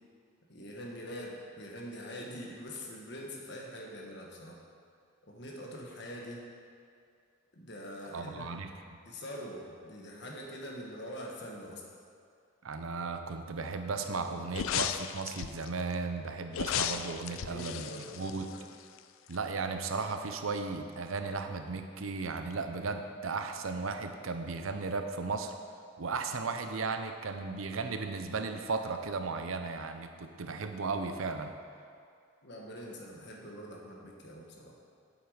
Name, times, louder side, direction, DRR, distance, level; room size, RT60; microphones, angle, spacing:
voice 1, 0.5-4.6 5.3-6.5 7.5-8.5 9.0-11.8 17.3-18.6 32.4-34.7, equal, 55° left, -1 dB, 1.4 m, -44 dB
voice 2, 8.1-8.7 12.6-17.9 18.1-18.5 19.3-25.5 26.0-31.6, right 4 dB, 80° right, 7 dB, 0.7 m, -35 dB
sound 1, 14.5-15.7 16.5-19.0 19.3-19.4, left 9 dB, 75° left, 0.4 m, -35 dB
8.0 x 7.9 x 5.0 m, 2.3 s
head